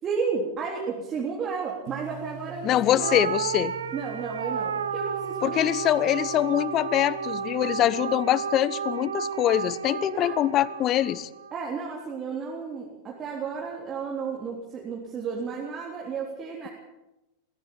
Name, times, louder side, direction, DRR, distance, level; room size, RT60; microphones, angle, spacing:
voice 1, 0.0-3.2 3.9-5.7 10.1-10.4 11.5-16.7, right 5 dB, 25° right, -3 dB, 3.5 m, -32 dB
sound 1, 1.9-8.7, right 11 dB, 45° right, 1.4 m, -46 dB
voice 2, 2.6-3.7 5.4-11.3, left 12 dB, 35° left, 21 dB, 0.8 m, -24 dB
sound 2, 3.0-11.6, right 7 dB, 70° right, 1.0 m, -32 dB
22.0 x 16.0 x 7.3 m, 0.97 s
figure-of-eight pair, 90°, 0 cm